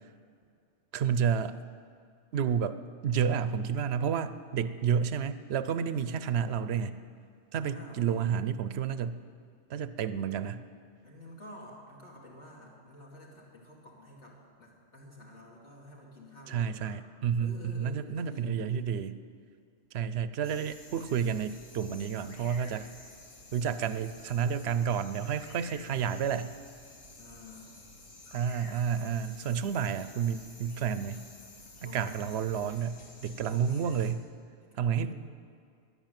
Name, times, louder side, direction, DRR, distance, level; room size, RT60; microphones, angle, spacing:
voice 1, 0.9-1.6 2.3-7.0 7.5-9.2 9.7-10.6 16.5-19.1 19.9-22.9 23.5-26.5 28.3-31.3 31.8-34.3 34.8-35.1, right 7 dB, 60° right, 13 dB, 0.8 m, -30 dB
voice 2, 5.6-6.1 7.6-8.3 11.0-17.0 17.4-19.0 27.2-27.8 31.7-32.3 33.2-33.6 34.6-35.1, left 1 dB, 60° left, -4 dB, 2.7 m, -50 dB
sound 1, 20.4-34.1, left 2 dB, 85° left, 2.1 m, -51 dB
13.5 x 11.0 x 9.1 m, 2.3 s
omnidirectional pair, 1.3 m